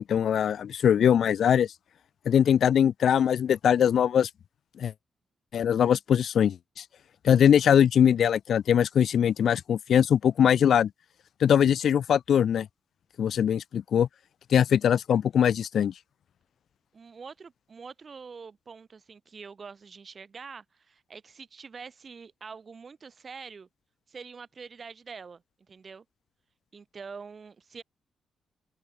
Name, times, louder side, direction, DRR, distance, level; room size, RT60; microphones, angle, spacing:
voice 1, 0.0-1.7 2.3-4.3 4.8-4.9 5.5-6.8 7.2-10.9 11.4-12.7 13.2-14.1 14.5-15.9, left 9 dB, 60° left, 0.5 m, -22 dB
voice 2, 16.9-23.7 24.1-26.0 26.7-27.8, right 5 dB, 35° right, 3.7 m, -45 dB
open air
wide cardioid pair, 155°, 0 cm